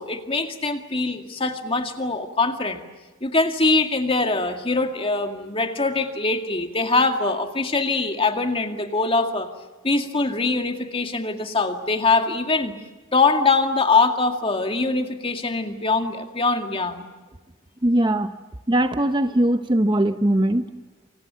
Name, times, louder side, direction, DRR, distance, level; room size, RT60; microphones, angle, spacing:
voice 1, 0.0-2.8 3.2-9.5 9.8-12.7 13.1-17.1, left 3 dB, 25° left, 5 dB, 2.1 m, -23 dB
voice 2, 17.8-18.4 18.7-20.7, right 1 dB, 20° right, 8 dB, 0.8 m, -20 dB
28.0 x 27.5 x 7.0 m, 1.3 s
head